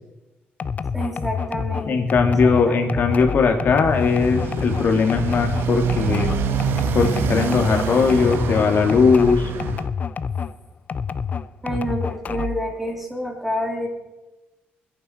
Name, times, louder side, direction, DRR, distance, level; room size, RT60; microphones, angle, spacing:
sound 1, 0.6-10.6 10.9-12.7, left 6 dB, 45° left, 0.6 m, -28 dB
voice 1, 0.9-2.8 11.6-13.9, equal, 5° right, 1 dB, 3.2 m, -28 dB
voice 2, 1.8-6.3 6.9-9.5, left 4 dB, 60° left, 4 dB, 2.7 m, -19 dB
Motorcycle, 3.8-9.9, right 8 dB, 85° right, 1.4 m, -26 dB
27.5 x 10.0 x 4.6 m, 1.1 s
cardioid pair, 105°, 4 cm